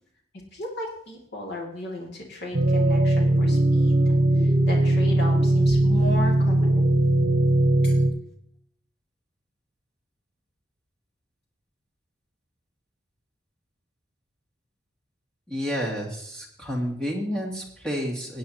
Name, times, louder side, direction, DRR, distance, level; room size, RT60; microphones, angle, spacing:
voice 1, 0.5-6.9 7.8-7.9, left 1 dB, 60° left, -2 dB, 2.4 m, -35 dB
sound 1, 2.5-8.1, right 1 dB, 55° right, 1.1 m, -20 dB
voice 2, 15.5-18.4, equal, 5° left, -3 dB, 2.5 m, -30 dB
17.5 x 9.3 x 2.9 m, 0.69 s
head